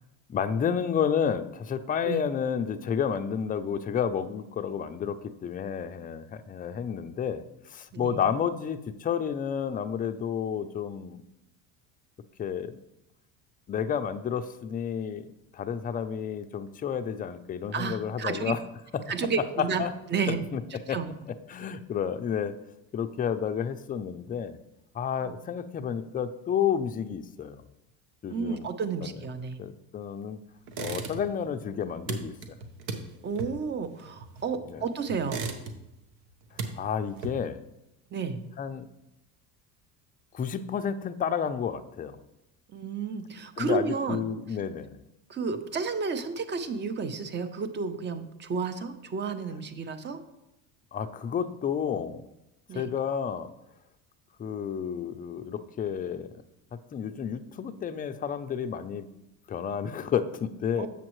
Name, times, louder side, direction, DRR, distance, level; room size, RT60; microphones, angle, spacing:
voice 1, 0.3-11.2 12.4-12.8 13.7-18.6 18.9-19.1 19.8-19.9 20.3-20.6 20.9-21.0 21.2-22.5 22.9-24.6 24.9-27.7 28.2-28.7 29.0-29.2 29.6-30.4 30.8-32.3 34.7-34.8 36.8-37.6 38.6-38.9 40.3-42.2 43.6-45.0 50.9-52.3 52.7-53.5 54.4-56.3 56.9-59.1 59.5-60.9, left 7 dB, 25° left, 9 dB, 0.4 m, -31 dB
voice 2, 17.7-18.5 19.1-20.4 20.9-21.1 25.2-25.3 28.3-29.6 33.2-35.5 38.1-38.4 42.7-44.2 45.3-50.2 52.7-52.9 60.8-60.9, right 5 dB, 30° right, 11 dB, 0.6 m, -31 dB
sound 1, 30.7-31.5 31.7-34.7 35.1-36.0 36.3-37.7, right 4 dB, 80° right, 1.0 m, -37 dB
7.3 x 7.0 x 3.1 m, 0.91 s
supercardioid pair, 105°, 37 cm